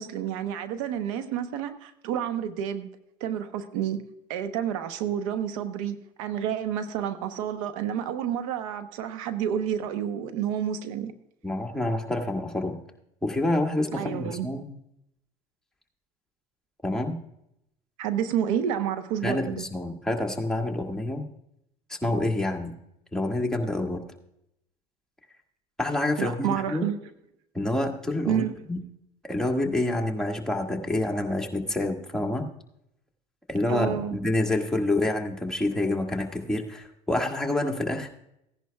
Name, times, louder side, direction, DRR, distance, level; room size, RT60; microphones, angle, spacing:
voice 1, 0.0-2.9 3.2-4.0 4.3-11.1 13.9-14.5 18.0-19.6 26.2-27.0 28.3-28.5 33.7-34.2, right 9 dB, 90° right, 1.0 m, -29 dB
voice 2, 11.4-12.8 13.2-14.7 16.8-17.2 19.2-21.3 21.9-22.7 23.1-24.0 25.8-26.8 27.5-28.4 28.7-28.8 29.3-32.5 33.5-38.1, left 1 dB, 5° left, 1.8 m, -27 dB
16.0 x 10.5 x 2.3 m
supercardioid pair, 95°, 17 cm